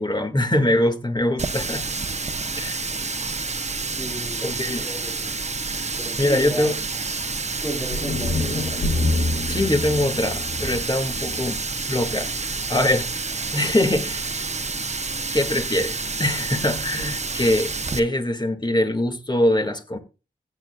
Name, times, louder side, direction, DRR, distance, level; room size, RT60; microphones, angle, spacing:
voice 1, 0.0-1.9 2.6-2.9 4.4-4.8 6.2-6.8 9.5-11.6 11.9-12.3 12.7-13.2 13.5-14.5 15.3-20.0, left 1 dB, 25° left, 2.1 m, -23 dB
Water tap faucet, 1.4-18.0, right 4 dB, 40° right, 0.9 m, -29 dB
voice 2, 4.0-5.4 6.0-6.7 7.6-8.8, right 1 dB, 5° left, 4.4 m, -34 dB
sound 1, 7.9-12.1, left 2 dB, 90° left, 3.5 m, -27 dB
16.0 x 9.1 x 2.4 m
cardioid pair, 45°, 17 cm